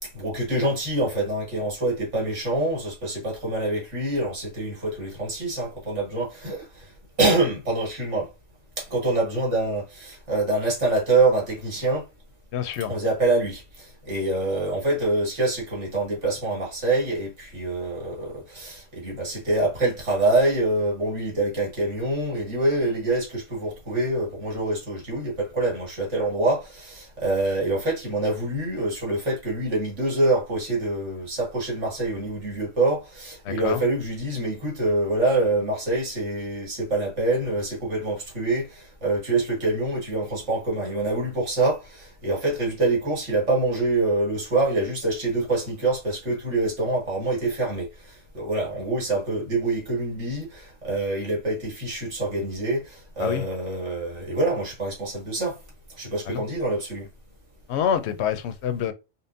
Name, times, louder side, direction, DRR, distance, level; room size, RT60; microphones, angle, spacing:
voice 1, 0.0-6.9 7.2-8.3 8.8-12.1 12.9-55.6 56.0-57.1, right 2 dB, 65° right, 1.9 m, -25 dB
voice 2, 12.5-12.9 33.4-33.9 53.2-53.4 56.3-56.4 57.7-58.9, left 8 dB, 65° left, 0.8 m, -26 dB
5.3 x 2.2 x 2.5 m
omnidirectional pair, 1.3 m